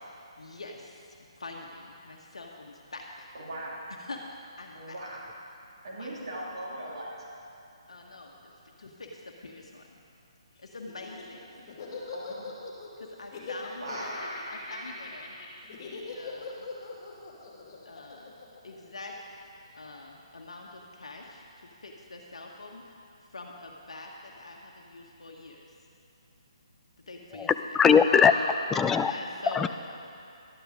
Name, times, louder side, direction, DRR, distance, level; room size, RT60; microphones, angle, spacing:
voice 1, 0.4-3.3 4.0-4.2 4.6-5.0 5.9-6.1 7.9-8.5 8.8-10.0 10.6-11.6 13.0-13.8 14.5-15.4 16.1-16.7 17.8-18.3 18.6-19.1 19.7-23.0 23.3-25.7 27.1-27.8 29.0-29.6, left 2 dB, 80° left, -1 dB, 1.2 m, -45 dB
voice 2, 3.3-3.7 4.7-5.2 5.8-7.3 11.5-11.6 12.1-12.4 13.8-14.3 27.9-28.6, right 1 dB, 60° right, -5 dB, 2.8 m, -38 dB
Laughter, 10.9-19.3, left 4 dB, 40° left, 2.6 m, -41 dB
voice 3, 27.3-28.3 28.7-29.1 29.5-29.7, left 6 dB, 10° left, 9 dB, 0.3 m, -21 dB
12.0 x 10.5 x 5.0 m, 2.6 s
figure-of-eight pair, 145°, 3 cm